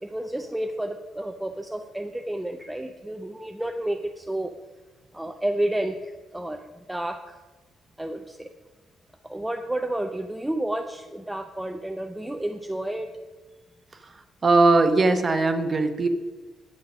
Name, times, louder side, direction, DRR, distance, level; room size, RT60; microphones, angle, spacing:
voice 1, 0.0-4.5 5.1-7.4 8.0-8.5 9.2-13.1, right 1 dB, 5° right, 5 dB, 0.4 m, -31 dB
voice 2, 14.4-16.1, right 3 dB, 25° right, 8 dB, 0.8 m, -19 dB
10.5 x 7.8 x 6.1 m, 1.3 s
cardioid pair, 180°, 0 cm